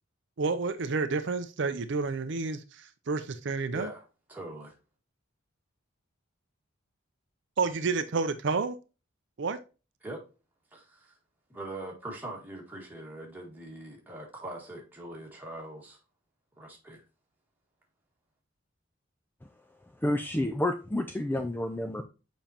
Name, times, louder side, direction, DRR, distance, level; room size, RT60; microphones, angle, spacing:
voice 1, 0.4-3.9 7.6-8.8 9.4-9.6, right 4 dB, 60° right, 0.5 m, -30 dB
voice 2, 3.7-4.0 4.3-4.7 10.0-10.2 10.7-11.2 11.5-16.0 16.6-17.0, right 1 dB, 10° right, 1.8 m, -42 dB
voice 3, 20.0-22.0, left 1 dB, 10° left, 0.4 m, -29 dB
7.1 x 5.1 x 2.9 m
head